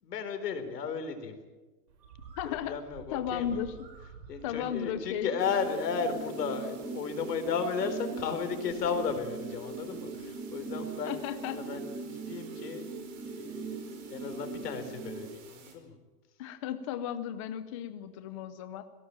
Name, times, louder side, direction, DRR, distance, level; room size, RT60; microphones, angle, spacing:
voice 1, 0.0-1.4 2.4-3.6 4.3-11.2 11.4-12.9 13.2-15.9 18.3-18.5, left 6 dB, 80° left, 8 dB, 4.2 m, -34 dB
Bird, 1.9-11.5, right 5 dB, 80° right, 5.5 m, -54 dB
voice 2, 2.4-2.7 3.1-3.9 4.4-5.3 11.1-11.6 16.4-18.8, left 9 dB, 20° left, 10 dB, 0.6 m, -35 dB
sound 1, 5.3-15.3, right 4 dB, 5° right, 2.1 m, -40 dB
sound 2, 5.4-15.7, right 7 dB, 50° right, 5.0 m, -55 dB
19.5 x 17.5 x 8.9 m, 1.2 s
supercardioid pair, 170°, 47 cm